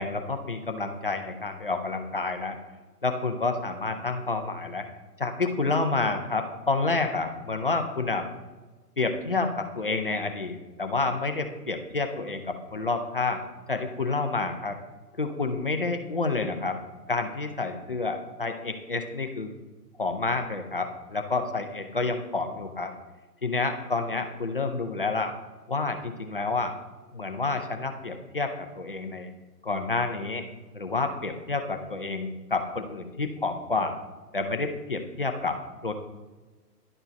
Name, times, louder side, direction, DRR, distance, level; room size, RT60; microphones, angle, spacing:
voice 1, 0.0-2.6 3.0-4.9 5.2-8.3 9.0-13.4 13.7-14.8 15.2-16.8 17.1-19.5 20.0-22.9 23.4-25.3 25.7-26.7 27.1-29.3 29.6-30.4 30.7-34.0 34.3-35.9, left 3 dB, 35° left, 6 dB, 0.5 m, -29 dB
11.0 x 4.4 x 4.3 m, 1.2 s
figure-of-eight pair, 140°, 48 cm